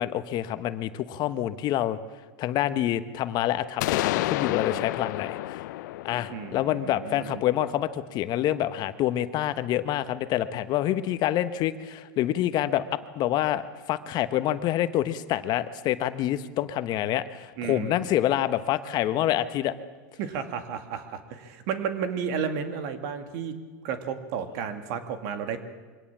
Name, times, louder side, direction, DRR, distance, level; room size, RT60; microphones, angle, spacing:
voice 1, 0.0-2.0 2.4-5.6 6.0-13.6 13.9-19.7, left 12 dB, 45° left, 12 dB, 1.1 m, -27 dB
sound 1, 3.8-7.6, left 17 dB, 75° left, 0.6 m, -31 dB
voice 2, 6.3-7.4 17.6-18.1 20.2-23.6 23.8-25.6, right 7 dB, 60° right, 8 dB, 2.4 m, -32 dB
23.5 x 17.5 x 7.4 m, 1.3 s
supercardioid pair, 120°, 10 cm